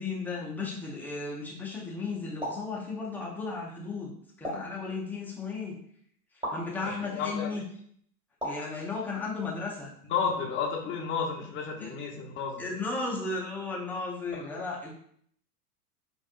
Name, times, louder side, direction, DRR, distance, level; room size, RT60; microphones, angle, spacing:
voice 1, 0.0-4.1 4.4-5.8 6.5-7.6 8.4-9.9 11.8-11.9 12.6-14.9, left 3 dB, 5° left, -4 dB, 0.4 m, -35 dB
sound 1, 2.4-2.7 4.4-4.8 6.4-6.7 8.4-8.7, equal, 10° right, 1.5 m, -35 dB
voice 2, 6.8-7.5 10.1-12.6 14.3-14.5, left 6 dB, 25° left, 0 dB, 0.7 m, -32 dB
4.5 x 2.5 x 2.4 m, 0.65 s
hypercardioid pair, 105°, 47 cm